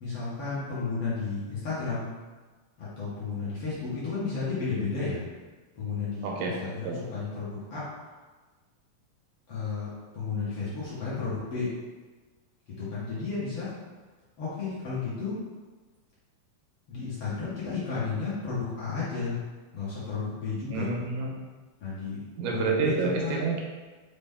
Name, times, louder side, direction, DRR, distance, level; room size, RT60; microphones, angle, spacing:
voice 1, 0.0-2.1 2.8-5.2 5.8-7.8 9.5-11.7 12.8-13.7 14.4-15.4 16.9-19.4 19.7-20.9 21.8-22.2 22.5-22.9 23.2-23.4, left 4 dB, 55° left, -10 dB, 1.9 m, -32 dB
voice 2, 6.2-7.0 20.7-21.3 22.4-23.6, right 4 dB, 80° right, -1 dB, 2.1 m, -29 dB
5.4 x 2.7 x 3.5 m, 1.3 s
omnidirectional pair, 3.5 m